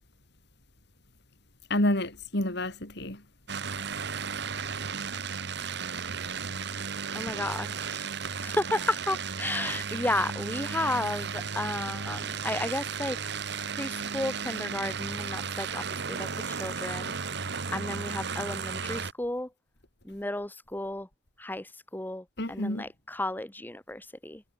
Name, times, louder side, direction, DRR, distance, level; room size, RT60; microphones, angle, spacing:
voice 1, 1.7-3.2 22.4-22.9, left 1 dB, 60° left, 4.5 m, -29 dB
sound 1, 3.5-19.1, right 6 dB, 60° right, 1.5 m, -34 dB
voice 2, 7.1-8.1 8.4-13.2 13.7-19.5 20.0-21.1 21.4-24.4, left 1 dB, 10° left, 1.2 m, -33 dB
head